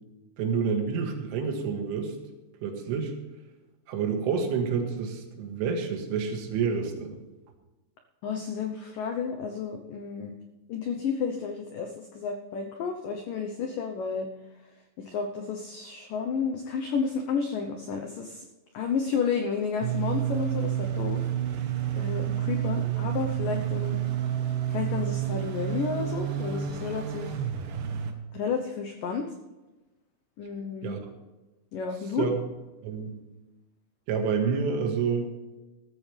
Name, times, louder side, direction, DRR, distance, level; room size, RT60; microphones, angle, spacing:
voice 1, 0.4-2.2 2.6-3.1 3.9-7.2 30.8-31.0 32.2-32.4 32.8-33.2 34.1-35.3, right 6 dB, 85° right, 3 dB, 4.3 m, -28 dB
voice 2, 8.2-10.3 10.7-14.3 15.1-18.4 18.7-21.3 21.9-24.0 24.7-27.4 28.3-29.3 30.4-30.9 31.7-32.3, left 6 dB, 85° left, 3 dB, 1.9 m, -31 dB
sound 1, 19.8-28.1, right 11 dB, 70° right, 2.1 m, -29 dB
15.0 x 14.0 x 3.4 m, 1.1 s
omnidirectional pair, 5.5 m